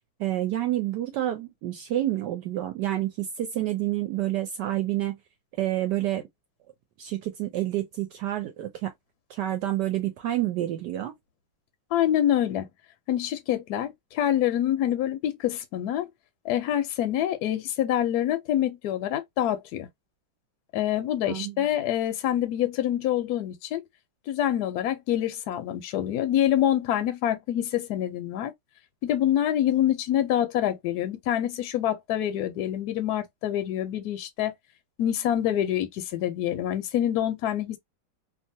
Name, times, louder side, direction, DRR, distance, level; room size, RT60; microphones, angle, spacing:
voice 1, 0.2-5.2 5.6-6.2 7.0-8.9 9.3-11.1 21.3-21.7, right 14 dB, 75° right, 1.1 m, -28 dB
voice 2, 11.9-12.7 13.1-16.1 16.4-19.9 20.7-23.8 24.3-28.5 29.0-34.5 35.0-37.8, left 11 dB, 70° left, 1.0 m, -26 dB
2.9 x 2.4 x 2.6 m
omnidirectional pair, 2.1 m